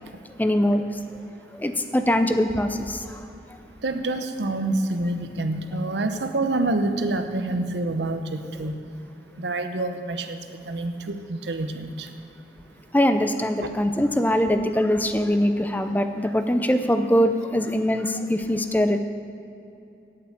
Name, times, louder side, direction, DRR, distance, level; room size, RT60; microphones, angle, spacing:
voice 1, 0.4-1.0 1.5-3.3 12.9-19.0, equal, 10° left, 8 dB, 0.5 m, -22 dB
voice 2, 3.8-8.7 9.4-10.4 10.7-12.1, right 2 dB, 85° right, 7 dB, 0.8 m, -27 dB
8.7 x 8.0 x 8.5 m, 2.8 s
head